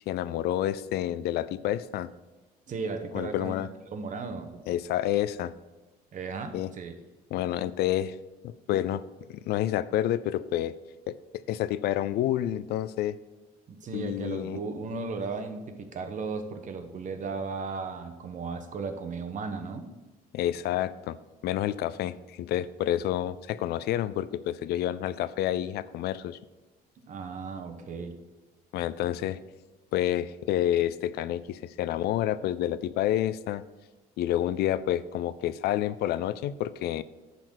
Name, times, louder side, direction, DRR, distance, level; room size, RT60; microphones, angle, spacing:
voice 1, 0.1-2.1 3.1-3.7 4.7-5.5 6.5-6.7 7.3-8.2 8.4-9.0 9.3-10.7 11.1-13.2 13.9-14.6 20.3-21.2 21.4-26.4 28.7-29.4 29.9-33.6 34.2-37.0, left 12 dB, 70° left, 17 dB, 0.4 m, -29 dB
voice 2, 2.7-4.6 6.1-6.9 13.7-19.9 27.1-28.2, right 4 dB, 50° right, 6 dB, 1.1 m, -36 dB
10.5 x 4.1 x 6.4 m, 1.2 s
cardioid pair, 110°, 17 cm